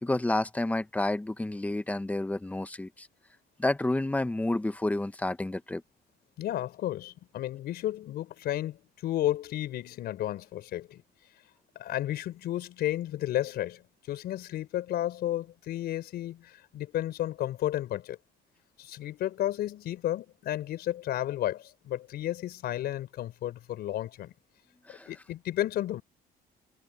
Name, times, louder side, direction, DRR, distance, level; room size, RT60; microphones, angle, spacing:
voice 1, 0.0-3.1 3.6-5.8 24.9-25.1, left 2 dB, 10° left, 1.1 m, -30 dB
voice 2, 6.4-11.0 11.7-18.2 18.8-24.3 25.1-26.0, left 13 dB, 70° left, 4.7 m, -32 dB
cardioid pair, 110°, 17 cm